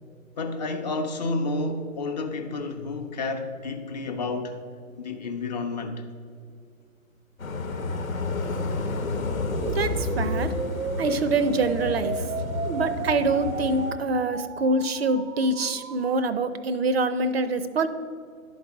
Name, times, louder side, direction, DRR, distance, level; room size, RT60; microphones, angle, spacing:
voice 1, 0.4-4.6 5.0-6.0, left 3 dB, 30° left, 0.5 m, -30 dB
sound 1, 7.4-13.9, left 3 dB, 80° left, 1.0 m, -30 dB
sound 2, 9.2-16.2, right 4 dB, 90° right, 0.7 m, -34 dB
voice 2, 9.6-10.5 11.0-12.3 12.6-17.9, right 2 dB, 50° right, 0.4 m, -25 dB
11.0 x 4.0 x 4.6 m
figure-of-eight pair, 125°, 41 cm